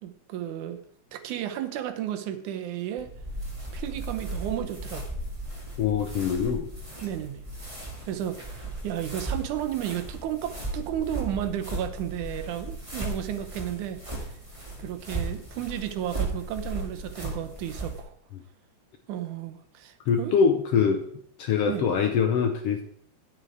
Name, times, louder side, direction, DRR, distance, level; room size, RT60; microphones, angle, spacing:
voice 1, 0.0-0.8 1.1-3.1 3.7-5.1 7.0-7.4 8.1-14.0 14.8-18.1 19.1-20.4 21.7-21.9, right 11 dB, 80° right, 9 dB, 2.3 m, -33 dB
sound 1, 3.0-18.0, right 2 dB, 15° right, 1.7 m, -36 dB
voice 2, 5.8-6.7 20.1-21.0 21.4-22.8, left 6 dB, 75° left, 5 dB, 1.4 m, -23 dB
9.1 x 8.3 x 4.8 m, 0.63 s
omnidirectional pair, 3.6 m